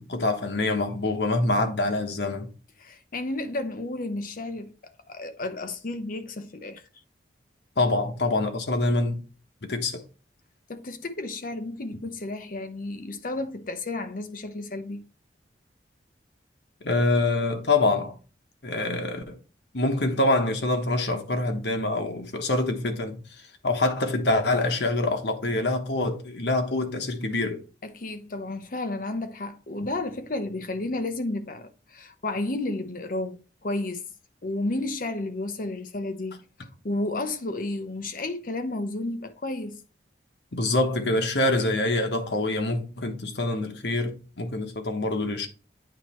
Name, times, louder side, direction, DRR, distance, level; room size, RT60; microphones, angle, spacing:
voice 1, 0.0-2.5 7.8-9.2 9.7-10.0 16.8-18.2 18.6-19.4 19.7-23.2 23.6-27.6 40.5-45.5, left 2 dB, 75° left, 1.2 m, -25 dB
voice 2, 2.8-4.7 5.1-6.8 10.7-15.0 27.8-34.0 34.4-36.4 36.8-39.8, left 2 dB, 50° left, 0.8 m, -32 dB
9.1 x 3.1 x 4.3 m
head